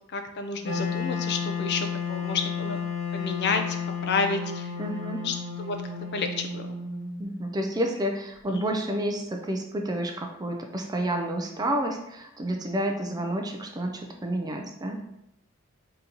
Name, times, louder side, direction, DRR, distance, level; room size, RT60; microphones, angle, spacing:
voice 1, 0.1-2.8 3.1-3.6 4.1-4.7 5.2-5.8 6.1-6.7 8.5-8.7, left 4 dB, 55° left, 6 dB, 0.5 m, -30 dB
Wind instrument woodwind instrument, 0.6-7.6, left 5 dB, 80° left, 1.5 m, -32 dB
voice 2, 4.8-5.2 7.2-15.0, right 1 dB, 20° right, 3 dB, 0.4 m, -30 dB
3.9 x 3.8 x 2.9 m, 0.82 s
head